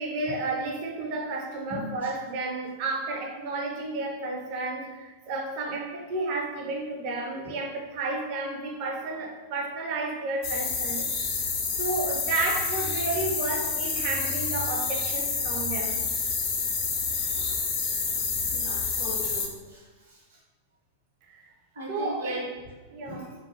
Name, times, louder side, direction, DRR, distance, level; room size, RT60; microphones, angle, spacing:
voice 1, 0.0-11.1 11.8-16.1 21.3-21.5 21.9-22.4 22.9-23.3, right 3 dB, 45° right, 1 dB, 0.4 m, -32 dB
sound 1, 10.4-19.5, left 5 dB, 40° left, 0.5 m, -28 dB
voice 2, 17.1-17.6 18.1-18.2 18.5-20.2 21.7-22.4 23.0-23.2, equal, 65° right, -4 dB, 0.8 m, -38 dB
2.5 x 2.1 x 2.7 m, 1.3 s
figure-of-eight pair, 90°, 0 cm